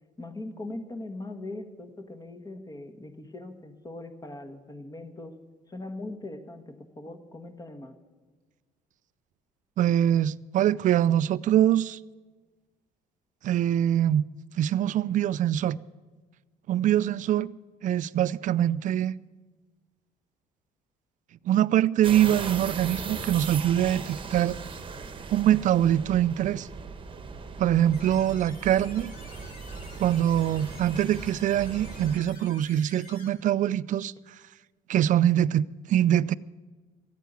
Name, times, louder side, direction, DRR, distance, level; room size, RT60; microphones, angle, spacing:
voice 1, 0.2-5.4 5.7-8.0 16.8-17.1 28.1-28.2, left 2 dB, 20° left, 1.5 m, -40 dB
voice 2, 9.8-12.0 13.4-14.3 14.6-15.8 16.7-17.5 17.8-19.1 21.4-24.6 25.3-26.7 27.6-29.1 30.0-34.1 34.9-36.3, right 11 dB, 50° right, 0.4 m, -23 dB
sound 1, 22.0-32.2, right 4 dB, 30° right, 1.2 m, -38 dB
sound 2, 27.9-33.3, left 4 dB, 55° left, 3.8 m, -50 dB
14.0 x 9.2 x 8.1 m
cardioid pair, 110°, 17 cm